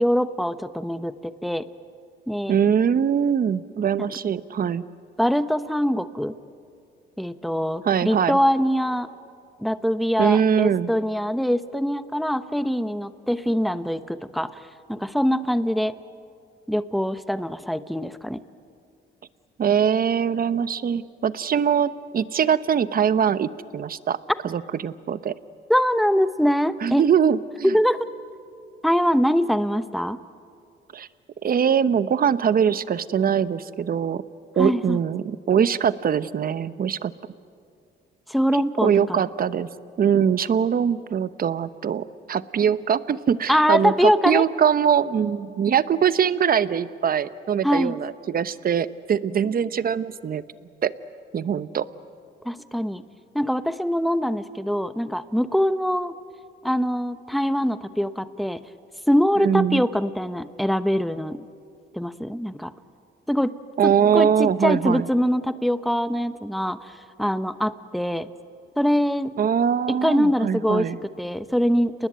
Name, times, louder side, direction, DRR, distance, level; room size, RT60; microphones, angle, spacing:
voice 1, 0.0-1.7 2.3-2.5 5.2-6.3 7.2-9.1 9.6-14.6 14.9-15.9 16.7-18.4 25.7-27.0 27.6-28.1 28.8-30.2 34.6-35.0 38.3-39.3 43.5-44.4 47.6-48.0 52.4-53.0 53.3-56.1 56.6-58.6 59.1-61.4 61.9-62.7 63.3-63.5 63.8-66.9 67.2-68.3 68.8-69.3 69.9-70.9 71.2-72.1, equal, ahead, 12 dB, 0.9 m, -23 dB
voice 2, 2.5-4.8 7.8-8.4 10.2-10.9 19.6-24.2 24.4-25.3 26.8-27.7 30.9-31.1 31.4-34.2 34.6-37.1 38.5-39.7 40.0-50.4 50.8-50.9 51.3-51.8 59.4-59.8 63.8-65.1 69.4-71.0, right 8 dB, 45° right, 14 dB, 0.9 m, -22 dB
29.5 x 20.0 x 9.4 m, 2.3 s
cardioid pair, 90°, 20 cm